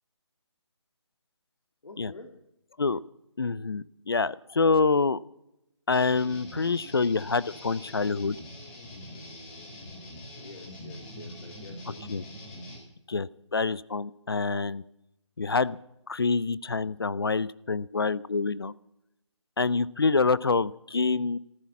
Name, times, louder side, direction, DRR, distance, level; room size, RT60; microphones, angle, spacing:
voice 1, 1.8-2.3 10.4-12.2, left 2 dB, 80° left, 2 dB, 3.1 m, -47 dB
voice 2, 3.4-5.2 5.9-8.4 12.1-12.2 13.1-14.8 15.4-15.8 16.1-18.7 19.6-21.4, left 4 dB, 50° left, 20 dB, 0.5 m, -26 dB
sound 1, 5.9-12.8, left 1 dB, 5° left, 1.5 m, -44 dB
14.5 x 13.5 x 7.1 m, 0.83 s
hypercardioid pair, 175°, 16 cm